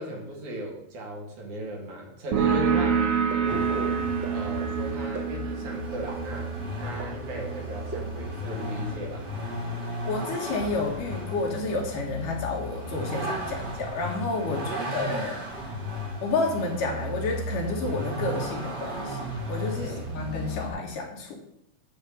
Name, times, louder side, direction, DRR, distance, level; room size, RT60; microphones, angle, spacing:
voice 1, 0.0-3.1 3.4-4.0 4.3-9.3 13.5-13.7 14.6-14.7 19.7-20.0, right 1 dB, 60° right, -1 dB, 3.3 m, -36 dB
sound 1, 2.3-9.6, right 6 dB, 85° right, 3.1 m, -28 dB
sound 2, 3.3-3.4 4.2-4.3 5.1-5.2 6.1-6.2 7.0-7.1 7.9-8.0, right 3 dB, 20° right, 2.6 m, -35 dB
Vehicle, 3.5-20.7, equal, 35° right, 1.9 m, -35 dB
voice 2, 10.0-15.7 16.2-21.4, left 3 dB, 65° left, 0 dB, 3.1 m, -30 dB
10.5 x 4.4 x 7.1 m, 0.74 s
omnidirectional pair, 4.1 m